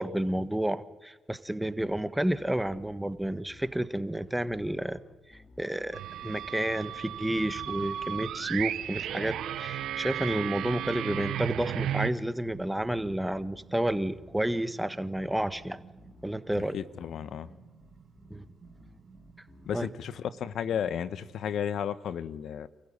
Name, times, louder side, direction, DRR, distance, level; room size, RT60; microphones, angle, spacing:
voice 1, 0.0-5.0 5.3-15.8 16.2-16.8 18.3-18.4 19.7-19.9, right 1 dB, 10° right, 13 dB, 1.6 m, -31 dB
sound 1, 2.1-20.3, left 3 dB, 45° left, 3.9 m, -57 dB
sound 2, 5.9-12.1, right 11 dB, 80° right, 0.9 m, -34 dB
sound 3, 12.3-21.7, right 5 dB, 45° right, 3.1 m, -56 dB
voice 2, 16.7-17.5 19.7-22.7, left 8 dB, 75° left, 15 dB, 1.0 m, -33 dB
28.5 x 15.0 x 9.8 m, 1.2 s
supercardioid pair, 55°, 0 cm